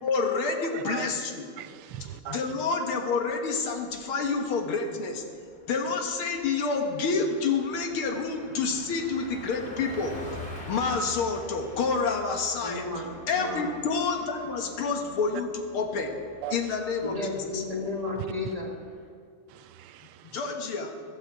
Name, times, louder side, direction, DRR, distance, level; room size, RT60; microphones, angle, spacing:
voice 1, 0.0-1.5 2.3-5.2 5.7-10.1 10.7-12.9 13.3-16.2 16.5-17.6 20.2-20.9, left 4 dB, 75° left, 4 dB, 2.2 m, -28 dB
voice 2, 0.7-1.1 1.6-2.4 16.4-16.5 19.5-20.4, right 11 dB, 80° right, 12 dB, 1.5 m, -39 dB
Car passing by, 3.4-4.0 4.4-4.5 4.8-19.1, left 2 dB, 25° left, 2.0 m, -47 dB
voice 3, 12.6-13.8 17.0-18.7, left 2 dB, 20° right, 0 dB, 1.3 m, -33 dB
15.5 x 12.0 x 4.8 m, 2.3 s
omnidirectional pair, 2.4 m